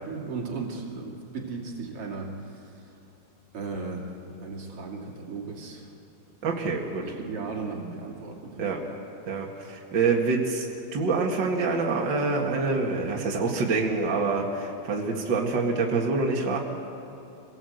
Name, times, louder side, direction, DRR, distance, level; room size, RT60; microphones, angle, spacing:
voice 1, 0.0-2.7 3.5-4.1 4.4-5.9 6.4-6.6 7.0-8.8, right 4 dB, 40° right, -1 dB, 2.7 m, -36 dB
voice 2, 6.4-7.0 8.6-8.8 9.3-10.6 10.9-16.6, right 4 dB, 70° right, -1 dB, 1.0 m, -26 dB
26.0 x 18.0 x 8.0 m, 2.9 s
omnidirectional pair, 5.3 m